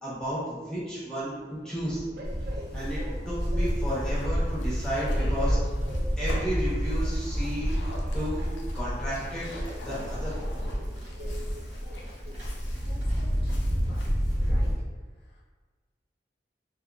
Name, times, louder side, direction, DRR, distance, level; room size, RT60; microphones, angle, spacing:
voice 1, 0.0-1.4 1.6-2.0 2.7-5.6 6.2-7.8 8.1-8.5 8.7-9.5 9.8-10.3, equal, 5° left, -10 dB, 0.7 m, -33 dB
Train, 0.8-14.7, equal, 55° right, 0.3 m, -47 dB
Livestock farm animals working animals, 2.2-14.7, equal, 40° right, 0.7 m, -29 dB
sound 1, 3.6-14.2, left 1 dB, 90° left, 0.4 m, -45 dB
voice 2, 12.6-14.0 14.4-14.7 15.2-15.4, left 1 dB, 70° left, -7 dB, 0.8 m, -51 dB
2.5 x 2.2 x 2.4 m, 1.4 s
head